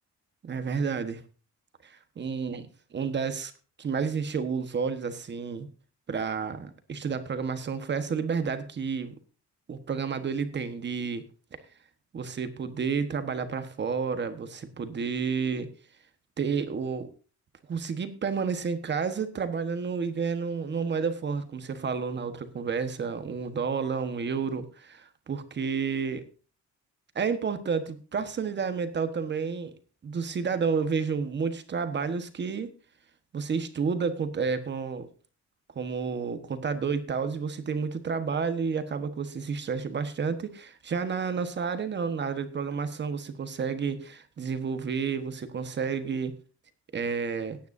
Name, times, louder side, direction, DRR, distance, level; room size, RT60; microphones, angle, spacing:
voice 1, 0.4-1.2 1.8-3.5 3.8-5.7 6.1-9.2 9.7-11.2 12.1-15.7 16.4-17.1 17.7-26.2 27.1-29.7 30.0-32.7 33.3-35.1 35.7-46.4 46.9-47.6, right 5 dB, 35° right, 10 dB, 1.3 m, -30 dB
18.0 x 9.3 x 2.7 m, 0.36 s
cardioid pair, 150°, 30 cm